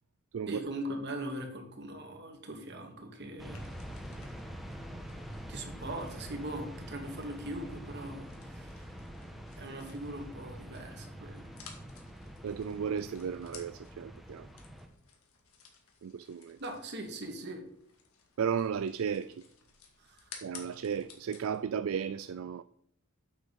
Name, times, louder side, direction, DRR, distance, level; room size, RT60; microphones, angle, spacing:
voice 1, 0.5-3.6 5.5-8.8 9.6-11.5 16.6-17.6 20.0-20.4, right 1 dB, 50° right, 2.1 m, -41 dB
sound 1, 3.4-14.9, equal, ahead, 1.2 m, -45 dB
Small branches sticks snapping rustling, 3.5-21.6, left 6 dB, 85° left, 2.2 m, -56 dB
voice 2, 12.4-14.5 16.0-16.6 18.4-19.4 20.4-22.6, right 7 dB, 70° right, 0.4 m, -34 dB
8.5 x 6.3 x 6.8 m
head